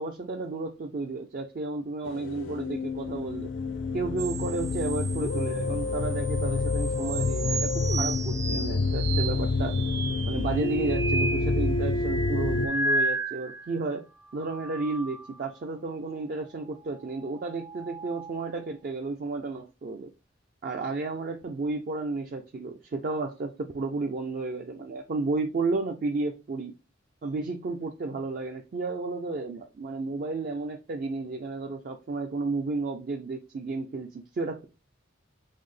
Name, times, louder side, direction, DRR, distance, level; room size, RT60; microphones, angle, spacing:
voice 1, 0.0-3.5 3.9-9.8 10.2-14.0 14.3-20.1 20.6-26.7 27.2-34.6, right 3 dB, 50° right, 0.4 m, -32 dB
sound 1, 2.0-12.7, left 3 dB, 80° left, 0.5 m, -28 dB
sound 2, 4.2-13.7 14.2-15.6 17.4-18.5, right 2 dB, 65° right, 1.2 m, -34 dB
5.4 x 2.0 x 3.1 m
head